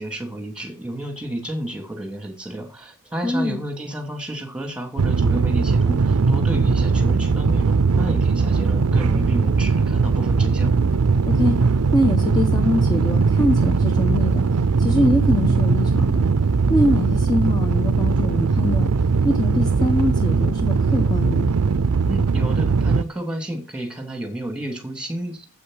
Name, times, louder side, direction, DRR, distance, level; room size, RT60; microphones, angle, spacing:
voice 1, 0.0-10.7 22.1-25.5, right 1 dB, 5° right, 5 dB, 2.9 m, -31 dB
voice 2, 3.2-3.6 11.3-11.6 11.9-16.3 16.7-18.9 19.2-21.5, left 1 dB, 20° left, 4 dB, 1.2 m, -23 dB
sound 1, 5.0-23.0, right 4 dB, 80° right, 0.5 m, -19 dB
8.5 x 8.3 x 6.4 m, 0.33 s
head